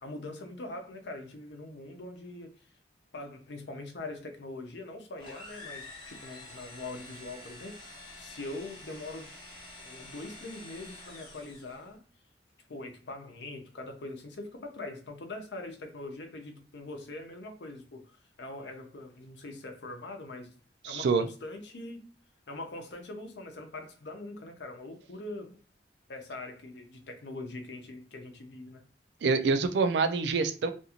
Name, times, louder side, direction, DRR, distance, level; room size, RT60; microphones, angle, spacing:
voice 1, 0.0-2.6 3.1-9.3 9.8-12.0 12.7-20.5 20.8-22.1 22.5-25.6 26.1-28.8, left 2 dB, 80° left, 0.6 m, -42 dB
sound 1, 5.2-11.9, left 2 dB, 30° left, 1.0 m, -48 dB
voice 2, 20.8-21.2 29.2-30.7, right 4 dB, 75° right, 0.4 m, -26 dB
2.5 x 2.4 x 2.8 m
head